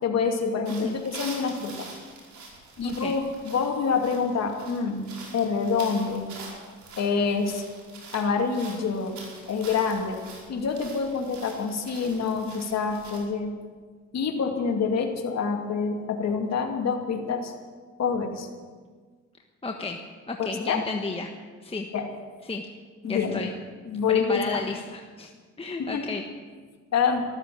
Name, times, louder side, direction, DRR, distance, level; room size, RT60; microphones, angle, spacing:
voice 1, 0.0-1.9 2.8-6.3 7.0-7.6 8.1-9.2 9.5-10.2 10.5-13.5 14.1-17.5 18.0-18.5 20.4-20.8 21.9-22.1 23.0-23.4 23.9-24.6 25.8-26.1 26.9-27.3, left 5 dB, 60° left, 2 dB, 2.5 m, -26 dB
sound 1, 0.6-13.2, right 3 dB, 70° right, 5.1 m, -45 dB
voice 2, 2.8-3.2 19.6-20.0 20.3-21.3 21.6-21.9 22.4-22.7 23.0-23.5 24.1-25.3 25.6-26.2, left 3 dB, 20° left, 2 dB, 1.3 m, -32 dB
14.0 x 13.5 x 7.6 m, 1.5 s
cardioid pair, 90°, 30 cm